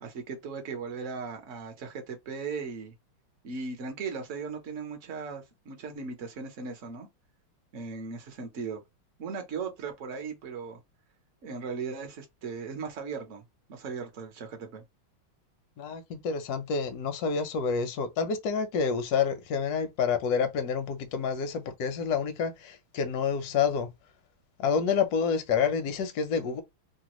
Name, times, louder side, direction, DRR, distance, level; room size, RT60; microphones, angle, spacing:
voice 1, 0.0-2.9 3.4-7.1 7.7-8.8 9.2-10.8 11.4-13.4 13.7-14.8, right 5 dB, 50° right, 1.0 m, -37 dB
voice 2, 15.8-23.9 24.6-26.6, left 6 dB, 65° left, 1.0 m, -28 dB
3.4 x 2.2 x 3.0 m
omnidirectional pair, 2.3 m